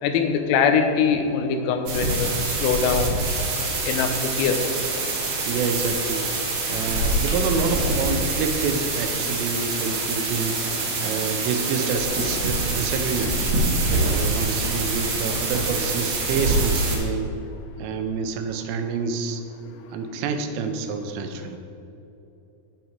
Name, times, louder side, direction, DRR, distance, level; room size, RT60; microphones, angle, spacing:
voice 1, 0.0-2.3 2.6-3.2 3.9-4.6, left 6 dB, 85° left, 5 dB, 3.5 m, -22 dB
sound 1, 1.9-17.0, right 2 dB, 60° right, 2.5 m, -25 dB
voice 2, 5.5-10.6 11.0-13.5 14.0-17.3 17.8-19.4 19.9-21.6, right 5 dB, 80° right, 6 dB, 3.2 m, -28 dB
9.4 x 8.4 x 4.4 m, 2.9 s
omnidirectional pair, 5.8 m